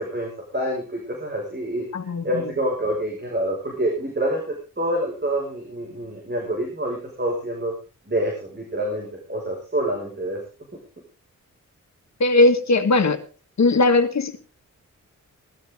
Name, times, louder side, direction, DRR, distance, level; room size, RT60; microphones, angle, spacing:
voice 1, 0.0-1.8 2.2-7.7 8.1-10.4, right 1 dB, 35° right, 0 dB, 5.9 m, -27 dB
voice 2, 1.9-2.5 12.2-13.2 13.6-14.4, left 2 dB, 60° left, 6 dB, 2.2 m, -19 dB
18.5 x 13.0 x 3.8 m, 0.35 s
cardioid pair, 75°, 31 cm